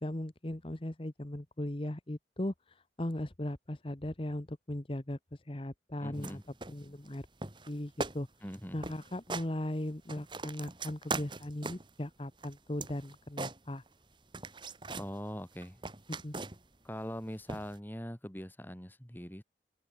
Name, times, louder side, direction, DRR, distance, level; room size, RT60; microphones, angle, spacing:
voice 1, 0.0-6.4 6.7-7.3 7.7-8.3 8.7-13.8 16.2-16.3, left 1 dB, 30° left, 1.1 m, -38 dB
voice 2, 6.0-6.4 8.4-8.8 15.0-15.9 16.8-19.4, equal, 10° left, 3.1 m, -42 dB
sound 1, 6.1-6.3 6.6-7.2 7.4-7.7 8.0-8.2 8.5-8.6 8.8-9.5 9.9-11.9 12.4-14.0 14.3-15.1 15.5-16.8 17.5-17.8, right 3 dB, 25° right, 2.3 m, -40 dB
head